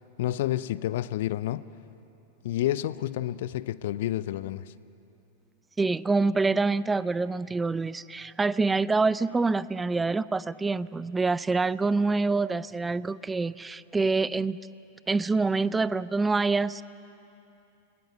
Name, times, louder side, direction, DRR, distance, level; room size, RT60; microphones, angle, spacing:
voice 1, 0.2-1.7 2.4-4.7, left 13 dB, 55° left, 18 dB, 0.6 m, -29 dB
voice 2, 5.8-14.6 15.1-16.8, right 3 dB, 10° right, 19 dB, 0.4 m, -26 dB
29.5 x 19.5 x 7.2 m, 2.9 s
figure-of-eight pair, 90°, 0 cm